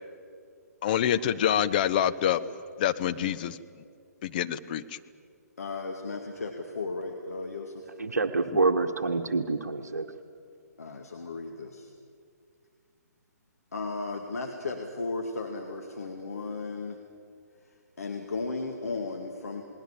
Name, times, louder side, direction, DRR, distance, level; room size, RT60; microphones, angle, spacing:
voice 1, 0.8-2.4 2.8-3.6 4.2-4.8, left 10 dB, 30° left, 11 dB, 0.8 m, -26 dB
voice 2, 5.6-7.9 10.8-11.9 13.7-17.0 18.0-19.6, left 3 dB, 60° left, 2 dB, 2.3 m, -35 dB
voice 3, 8.0-10.1, right 3 dB, 65° right, 5 dB, 1.3 m, -27 dB
28.5 x 20.5 x 7.3 m, 2.3 s
figure-of-eight pair, 130°, 9 cm